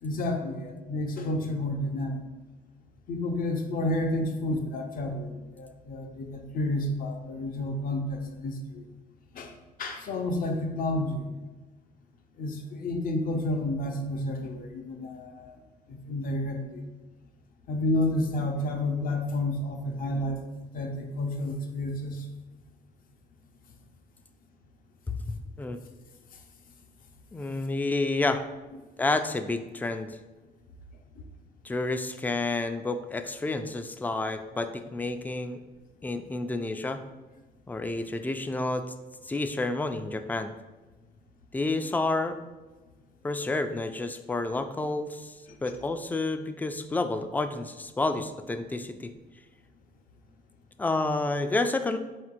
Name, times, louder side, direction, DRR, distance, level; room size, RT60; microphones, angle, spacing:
voice 1, 0.0-2.2 3.1-8.8 9.3-9.5 9.8-11.3 12.4-15.6 15.9-16.8 17.7-22.3, left 1 dB, 55° left, 4 dB, 0.6 m, -30 dB
voice 2, 25.3-25.8 27.3-28.4 29.0-30.2 31.6-35.6 36.0-37.0 37.7-38.8 39.3-40.5 41.5-42.5 43.2-45.4 45.6-49.1 50.8-52.0, left 2 dB, 10° left, 9 dB, 0.3 m, -30 dB
4.3 x 3.8 x 2.5 m, 1.2 s
cardioid pair, 85°, 17 cm